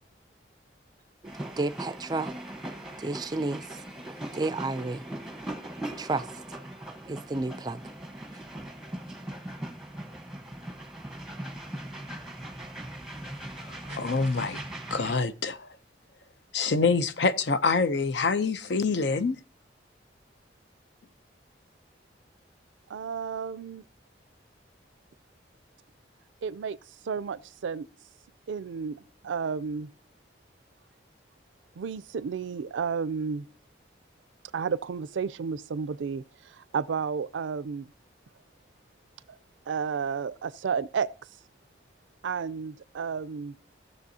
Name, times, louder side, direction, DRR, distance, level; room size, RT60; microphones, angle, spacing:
sound 1, 1.2-15.1, right 1 dB, ahead, 1.0 m, -40 dB
voice 1, 1.6-2.3 3.0-3.8 4.3-5.0 6.0-6.3 7.0-7.8, right 3 dB, 20° right, 0.3 m, -31 dB
voice 2, 13.7-14.6 14.9-15.7 16.5-19.4, left 4 dB, 70° left, 0.6 m, -26 dB
voice 3, 22.9-23.8 26.4-26.8 27.1-27.9 28.5-29.0 29.2-29.9 31.8-33.5 34.5-36.2 36.7-37.9 39.7-41.1 42.2-43.6, right 6 dB, 90° right, 0.4 m, -31 dB
17.0 x 6.7 x 2.7 m
head